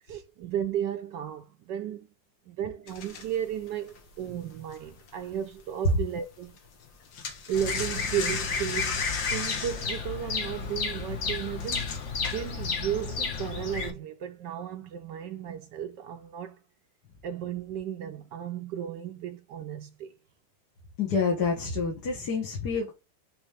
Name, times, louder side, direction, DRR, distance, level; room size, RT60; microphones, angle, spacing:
voice 1, 0.1-2.1 2.5-6.5 7.5-11.9 12.2-16.6 17.2-20.1, right 9 dB, 70° right, 1.2 m, -34 dB
sound 1, 2.9-5.6 5.9-6.1 6.4-12.8, left 5 dB, 80° left, 1.9 m, -36 dB
Bird vocalization bird call bird song, 7.5-13.9, left 5 dB, 45° left, 1.2 m, -32 dB
voice 2, 21.0-22.9, left 3 dB, 60° left, 2.1 m, -27 dB
6.1 x 3.4 x 4.9 m
omnidirectional pair, 2.1 m